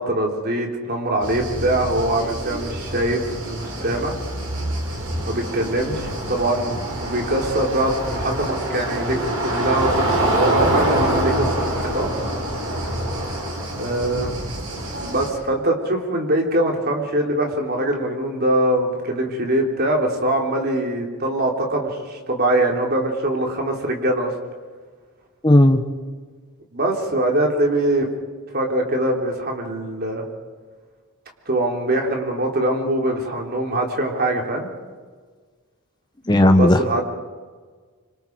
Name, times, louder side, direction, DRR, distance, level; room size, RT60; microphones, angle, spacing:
voice 1, 0.0-3.2 3.5-4.2 5.3-9.2 9.4-12.1 13.8-14.3 15.0-24.3 26.7-28.1 28.5-30.2 31.5-34.7 36.5-37.0, right 1 dB, 45° right, 1 dB, 3.6 m, -23 dB
sound 1, 1.2-15.3, right 1 dB, 85° right, 5.0 m, -25 dB
voice 2, 25.4-25.8 36.3-37.0, left 1 dB, 20° left, 6 dB, 1.1 m, -14 dB
26.5 x 25.5 x 4.7 m, 1.5 s
head